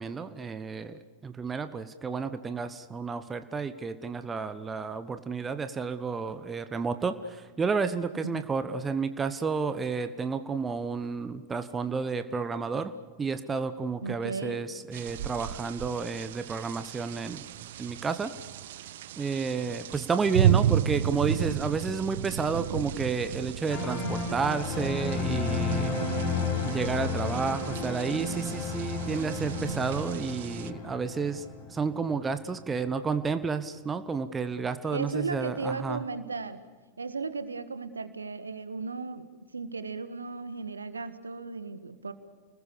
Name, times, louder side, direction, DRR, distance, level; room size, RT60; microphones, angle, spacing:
voice 1, 0.0-12.9 13.2-17.4 17.8-18.3 19.2-26.0 26.6-31.4 31.7-36.0, right 5 dB, 15° right, 11 dB, 1.1 m, -31 dB
voice 2, 14.0-14.7 25.9-26.6 34.9-36.6 37.0-42.1, right 4 dB, 75° right, 12 dB, 1.6 m, -36 dB
sound 1, 14.9-30.7, right 10 dB, 55° right, 0.9 m, -33 dB
sound 2, 23.7-32.9 33.1-33.3, left 4 dB, 45° left, 5.7 m, -33 dB
30.0 x 20.5 x 6.9 m, 1.3 s
figure-of-eight pair, 90°, 0 cm